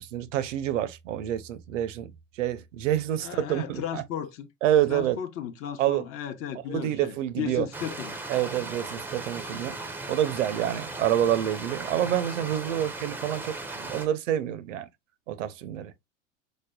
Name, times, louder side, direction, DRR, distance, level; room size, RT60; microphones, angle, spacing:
voice 1, 0.0-4.0 4.6-5.2 5.8-6.0 6.7-7.7 8.3-9.8 10.1-14.9 15.3-15.9, right 11 dB, 70° right, 0.6 m, -27 dB
voice 2, 3.2-4.5 4.9-8.2, left 10 dB, 35° left, 0.7 m, -35 dB
Stream, 7.7-14.1, right 2 dB, 5° right, 0.5 m, -37 dB
4.9 x 2.1 x 2.2 m
hypercardioid pair, 85°, 39 cm